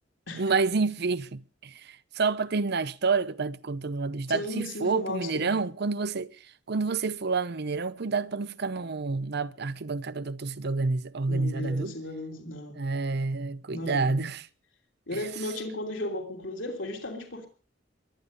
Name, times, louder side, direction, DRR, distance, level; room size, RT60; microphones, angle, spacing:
voice 1, 0.3-6.3 6.7-11.9 12.8-14.5 15.1-15.2, right 4 dB, 60° right, 0.7 m, -29 dB
voice 2, 4.3-5.5 11.3-12.8 13.7-14.3 15.1-17.5, left 1 dB, 80° left, 3.2 m, -35 dB
23.5 x 9.9 x 5.2 m
head